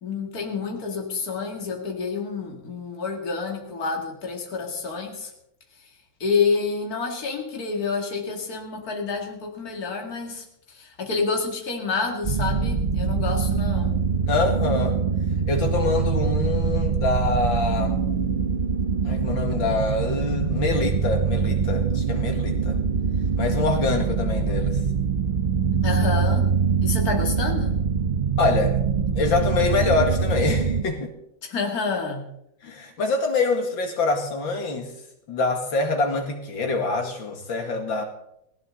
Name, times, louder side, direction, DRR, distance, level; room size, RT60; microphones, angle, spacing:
voice 1, 0.0-5.3 6.2-13.9 25.8-26.5 26.8-27.8 31.4-32.3, left 4 dB, 45° left, 1 dB, 2.8 m, -28 dB
sound 1, 12.2-30.8, right 5 dB, 35° right, 0.9 m, -24 dB
voice 2, 14.3-15.0 15.5-18.0 19.0-22.8 23.4-24.8 28.4-28.8 29.1-31.1 32.6-34.9 35.3-38.0, left 3 dB, 70° left, 4 dB, 2.8 m, -25 dB
19.0 x 16.5 x 3.9 m, 0.78 s
omnidirectional pair, 2.2 m